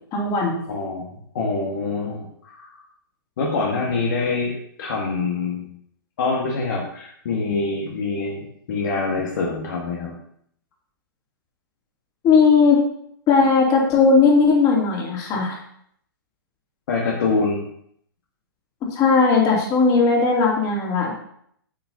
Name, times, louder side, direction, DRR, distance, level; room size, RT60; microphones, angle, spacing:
voice 1, 0.1-0.6 12.2-12.8 13.3-15.6 18.9-21.1, left 4 dB, 30° left, -2 dB, 2.8 m, -17 dB
voice 2, 0.7-2.8 3.4-5.7 6.2-10.1 16.9-17.6, left 3 dB, 55° left, -2 dB, 1.5 m, -25 dB
8.6 x 8.0 x 2.8 m, 0.68 s
figure-of-eight pair, 110°, 12 cm